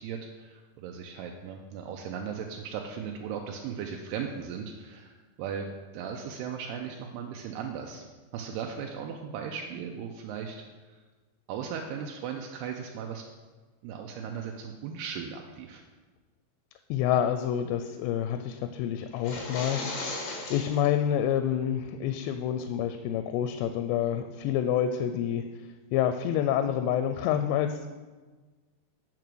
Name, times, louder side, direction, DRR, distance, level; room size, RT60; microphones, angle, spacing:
voice 1, 0.0-5.7 5.9-8.0 8.3-10.6 10.9-11.0 11.5-13.3 13.8-15.8, right 7 dB, 85° right, 2 dB, 2.6 m, -37 dB
voice 2, 16.9-25.4 25.9-27.9, left 9 dB, 90° left, 8 dB, 2.8 m, -28 dB
sound 1, 19.1-20.9, left 3 dB, 60° left, 3.1 m, -36 dB
9.1 x 5.8 x 6.2 m, 1.3 s
omnidirectional pair, 4.9 m